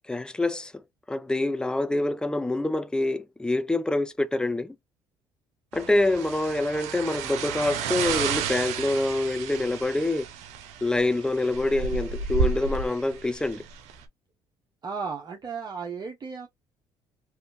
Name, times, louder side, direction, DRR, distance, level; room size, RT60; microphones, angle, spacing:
voice 1, 0.1-0.7 1.1-4.7 5.7-10.3 10.8-13.6, left 2 dB, 5° left, 0.5 m, -26 dB
sound 1, 5.7-14.0, right 6 dB, 75° right, 0.7 m, -32 dB
voice 2, 14.8-16.5, right 5 dB, 35° right, 1.0 m, -34 dB
3.6 x 2.7 x 2.6 m
hypercardioid pair, 65°, 11 cm